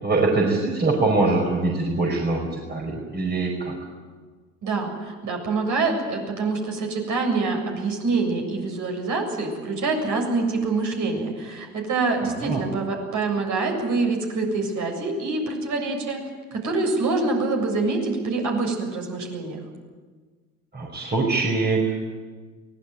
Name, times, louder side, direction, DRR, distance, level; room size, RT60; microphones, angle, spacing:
voice 1, 0.0-3.7 12.4-12.6 20.7-22.1, right 3 dB, 25° right, 0 dB, 5.2 m, -23 dB
voice 2, 4.6-16.2 16.5-19.6, right 3 dB, 45° right, 2 dB, 7.5 m, -25 dB
23.5 x 18.5 x 9.2 m, 1.5 s
hypercardioid pair, 70°, 41 cm